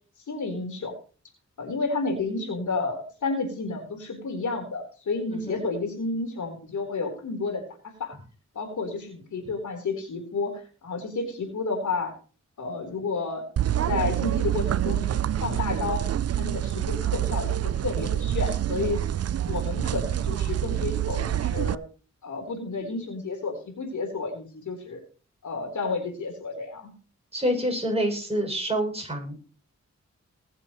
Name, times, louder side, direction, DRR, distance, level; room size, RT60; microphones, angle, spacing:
voice 1, 0.3-0.9 1.6-8.2 8.5-12.1 12.6-16.0 16.4-19.0 19.5-21.8 22.2-25.0 25.4-26.9, left 3 dB, 85° left, 2 dB, 4.1 m, -31 dB
voice 2, 5.3-5.6 27.3-29.4, equal, 20° right, 1 dB, 7.0 m, -27 dB
sound 1, 13.6-21.7, right 11 dB, 60° right, 0.5 m, -27 dB
20.5 x 7.6 x 3.2 m, 0.37 s
cardioid pair, 60°, 29 cm